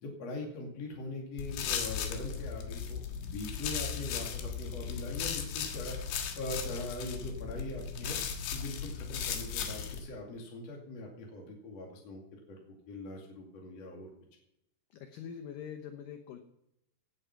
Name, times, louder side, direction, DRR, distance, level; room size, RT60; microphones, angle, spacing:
voice 1, 0.0-5.9 6.4-8.2 8.5-12.6 12.9-14.1, left 2 dB, 45° left, -1 dB, 3.1 m, -41 dB
sound 1, 1.4-10.0, left 7 dB, 90° left, 3.8 m, -37 dB
voice 2, 14.9-16.4, left 8 dB, 70° left, 6 dB, 2.4 m, -44 dB
17.0 x 8.9 x 5.9 m, 0.81 s
omnidirectional pair, 4.7 m